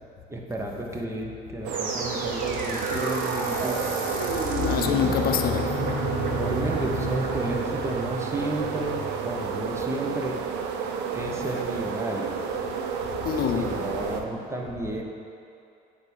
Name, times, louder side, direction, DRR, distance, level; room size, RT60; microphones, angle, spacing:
voice 1, 0.3-3.8 6.3-10.4 11.1-12.3 13.5-15.0, right 1 dB, 15° right, 0 dB, 0.9 m, -32 dB
sound 1, 1.6-14.2, right 6 dB, 85° right, 0.5 m, -31 dB
sound 2, 1.7-10.8, right 3 dB, 55° right, 1.1 m, -32 dB
voice 2, 4.6-6.2 13.3-13.8, left 9 dB, 60° left, 6 dB, 0.5 m, -26 dB
8.9 x 3.5 x 5.4 m, 2.6 s
cardioid pair, 110°, 17 cm